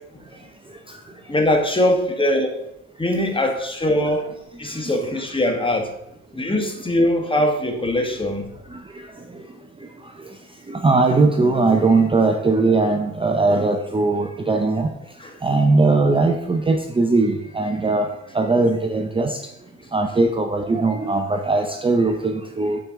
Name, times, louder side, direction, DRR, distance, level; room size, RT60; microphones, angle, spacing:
voice 1, 1.3-2.5 3.0-4.3 4.6-5.9 6.3-8.5 15.2-15.3, left 1 dB, 15° left, 3 dB, 1.2 m, -21 dB
voice 2, 10.7-14.9 15.4-18.1 18.3-19.4 19.9-22.8, right 3 dB, 20° right, 4 dB, 0.6 m, -19 dB
9.0 x 4.5 x 3.6 m, 0.84 s
cardioid pair, 90°, 30 cm